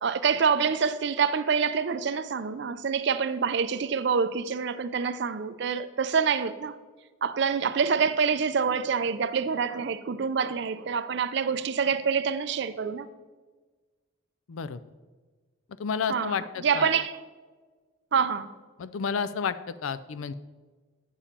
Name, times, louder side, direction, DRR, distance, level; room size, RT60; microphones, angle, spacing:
voice 1, 0.0-6.8 7.2-13.1 16.1-17.2 18.1-18.5, right 6 dB, 55° right, 0.4 m, -26 dB
voice 2, 14.5-14.8 15.8-16.9 18.8-20.3, left 6 dB, 80° left, 0.4 m, -31 dB
8.6 x 6.9 x 4.3 m
head